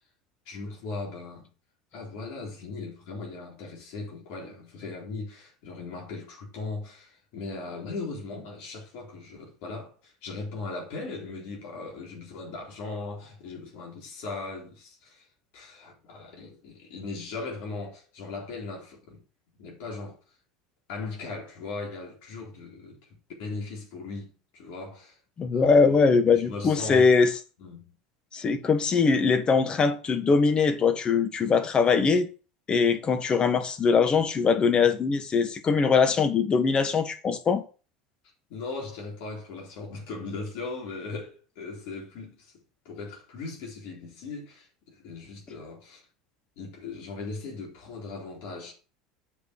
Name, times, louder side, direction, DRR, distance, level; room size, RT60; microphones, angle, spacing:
voice 1, 0.5-1.5 1.9-15.3 15.5-19.2 19.6-20.2 20.9-23.0 23.4-25.2 25.5-26.0 26.4-27.1 27.6-27.9 38.5-42.5 42.8-46.0 46.6-48.7, left 3 dB, 65° left, 3.9 m, -38 dB
voice 2, 25.4-27.3 28.3-32.3 32.7-37.6, left 5 dB, 30° left, 1.5 m, -22 dB
8.0 x 5.3 x 6.1 m
hypercardioid pair, 85°, 3 cm